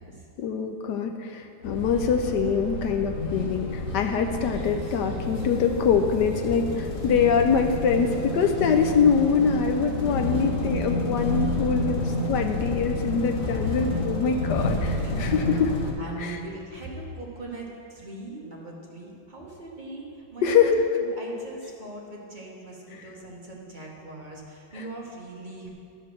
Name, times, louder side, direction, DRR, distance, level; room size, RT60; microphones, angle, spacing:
voice 1, 0.4-15.7 16.2-16.4 20.4-20.8 22.9-23.0 24.7-24.8, left 6 dB, 70° left, 5 dB, 1.1 m, -24 dB
sound 1, 1.6-15.9, left 1 dB, 50° left, 1.2 m, -30 dB
voice 2, 15.0-15.6 16.0-20.7 21.2-25.7, right 2 dB, 30° right, -3 dB, 1.1 m, -40 dB
12.0 x 5.3 x 6.3 m, 2.6 s
omnidirectional pair, 2.2 m